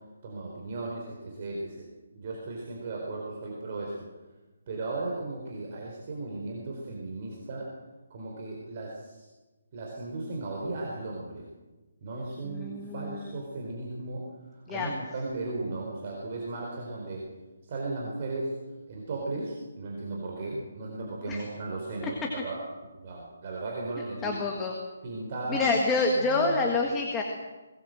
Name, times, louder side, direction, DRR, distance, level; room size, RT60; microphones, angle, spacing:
voice 1, 0.2-1.9 2.1-4.0 4.7-7.7 8.1-9.3 9.7-11.4 12.0-14.2 14.5-17.3 17.6-18.6 18.9-22.6 23.0-24.4 25.0-25.6 26.2-26.7, right 2 dB, 30° right, -2 dB, 4.2 m, -36 dB
voice 2, 12.4-13.3 14.7-14.9 21.3-21.4 24.2-24.7 25.5-27.2, left 3 dB, 10° left, 0 dB, 1.7 m, -27 dB
22.0 x 19.0 x 7.8 m, 1.2 s
hypercardioid pair, 175°, 0 cm